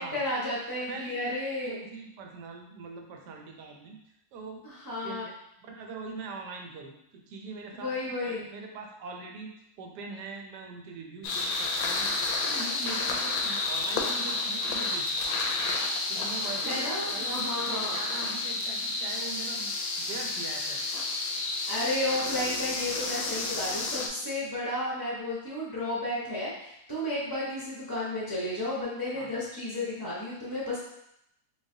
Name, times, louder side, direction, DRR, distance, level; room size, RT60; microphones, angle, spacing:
voice 1, 0.0-1.8 4.6-5.2 7.7-8.4 16.6-18.0 21.7-30.8, left 1 dB, 25° left, -7 dB, 0.5 m, -32 dB
voice 2, 0.8-4.0 4.3-4.6 5.0-5.4 5.7-7.0 7.3-7.9 8.2-9.5 9.8-12.1 12.5-15.4 16.1-19.7 20.0-20.8 29.1-29.3, right 4 dB, 90° right, 2 dB, 1.3 m, -42 dB
sound 1, 11.2-24.1, left 3 dB, 70° left, 1.0 m, -31 dB
3.8 x 3.2 x 2.7 m, 0.78 s
omnidirectional pair, 1.7 m